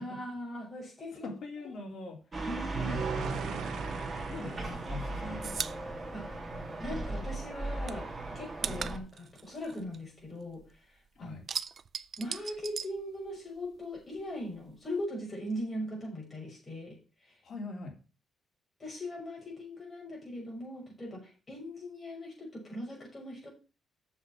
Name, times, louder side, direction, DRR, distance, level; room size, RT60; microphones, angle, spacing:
voice 1, 0.0-1.3 2.5-3.0 4.4-4.5 6.1-6.3 6.8-8.1 8.3-10.6 11.2-11.4 12.2-17.3 18.8-23.5, left 1 dB, 20° left, 5.7 m, -40 dB
voice 2, 1.2-2.5 2.8-3.7 4.3-5.7 11.1-11.5 17.4-18.0, left 2 dB, 45° left, 3.1 m, -43 dB
sound 1, 2.3-9.0, right 2 dB, 20° right, 2.4 m, -37 dB
sound 2, 2.7-5.9, right 7 dB, 75° right, 0.8 m, -39 dB
sound 3, 4.4-7.2 7.5-10.8 11.1-13.7 13.9-15.0, right 6 dB, 40° right, 0.4 m, -40 dB
7.4 x 7.0 x 6.3 m
cardioid pair, 155°, 0 cm